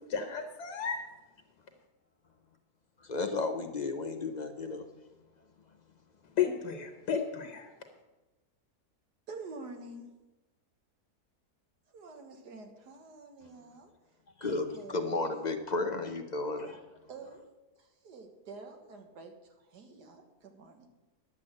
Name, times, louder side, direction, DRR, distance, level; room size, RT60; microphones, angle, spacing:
voice 1, 0.1-1.0 6.4-7.7, left 7 dB, 80° left, 6 dB, 1.6 m, -32 dB
voice 2, 3.0-4.9 14.4-16.8, left 3 dB, 45° left, 6 dB, 0.5 m, -33 dB
voice 3, 9.3-10.1 11.9-13.9 14.4-15.5 16.6-16.8 17.1-17.4 17.8-19.3 19.7-20.9, right 3 dB, 80° right, 5 dB, 2.0 m, -48 dB
10.5 x 7.8 x 7.5 m, 1.1 s
omnidirectional pair, 1.8 m